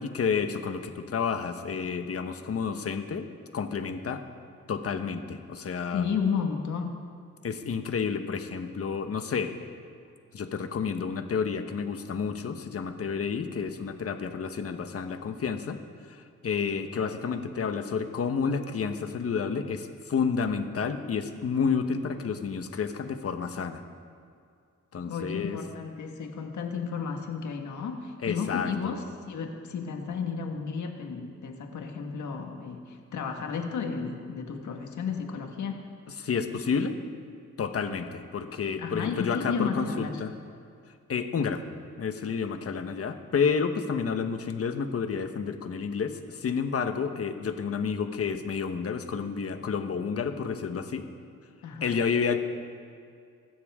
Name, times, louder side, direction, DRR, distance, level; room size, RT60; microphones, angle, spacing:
voice 1, 0.0-3.3 3.5-4.2 4.7-6.0 7.4-9.5 10.3-15.8 16.1-23.8 24.9-25.6 28.2-28.9 36.2-37.0 37.6-40.3 41.1-41.6 42.0-51.0 51.8-52.4, left 6 dB, 50° left, 7 dB, 1.2 m, -30 dB
voice 2, 5.9-7.0 25.1-35.8 38.8-40.2 51.6-52.0, left 6 dB, 80° left, 3 dB, 1.8 m, -33 dB
24.0 x 12.5 x 3.7 m, 2.3 s
cardioid pair, 110°, 29 cm